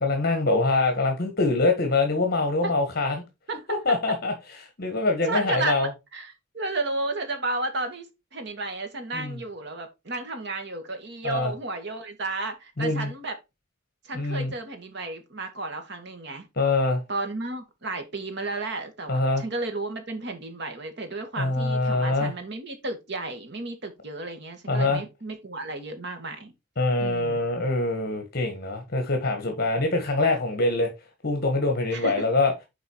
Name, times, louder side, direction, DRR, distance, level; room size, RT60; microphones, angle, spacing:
voice 1, 0.0-3.2 3.7-4.3 4.8-5.9 9.1-9.4 11.2-11.5 12.8-13.1 14.1-14.5 16.6-17.0 19.1-19.4 21.4-22.3 24.7-25.0 26.8-30.9 31.2-32.5, left 2 dB, 50° left, 1.6 m, -24 dB
voice 2, 5.3-13.3 14.0-16.5 17.1-26.5 27.0-27.4 31.9-32.2, right 2 dB, 60° right, 1.9 m, -33 dB
8.0 x 4.8 x 4.5 m
head